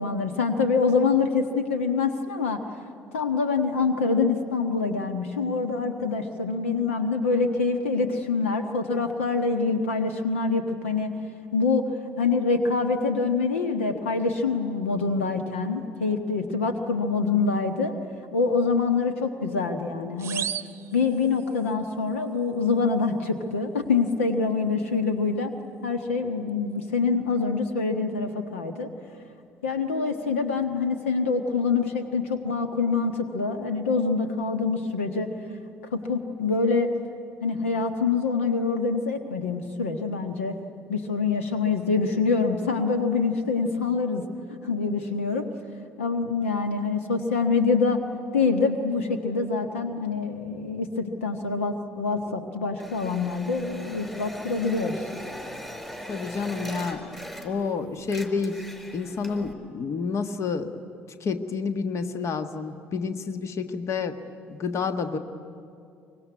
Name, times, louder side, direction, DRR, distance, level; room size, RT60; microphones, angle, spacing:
voice 1, 0.0-2.6 3.1-11.1 11.5-11.9 12.2-17.9 18.3-20.5 20.9-25.5 25.8-28.9 29.6-35.3 35.9-36.9 37.4-40.5 40.9-44.2 44.6-45.4 46.0-48.0 48.3-55.1, left 4 dB, 80° left, 7 dB, 1.3 m, -25 dB
sound 1, 20.2-21.7, right 9 dB, 40° right, 0.8 m, -35 dB
sound 2, 52.8-57.7 58.0-59.5, equal, 5° left, 4.4 m, -39 dB
voice 2, 56.1-57.2 57.4-58.6 58.9-60.7 61.2-64.2 64.5-65.2, left 5 dB, 45° left, 8 dB, 1.4 m, -29 dB
24.5 x 22.5 x 9.5 m, 2.5 s
figure-of-eight pair, 55°, 7 cm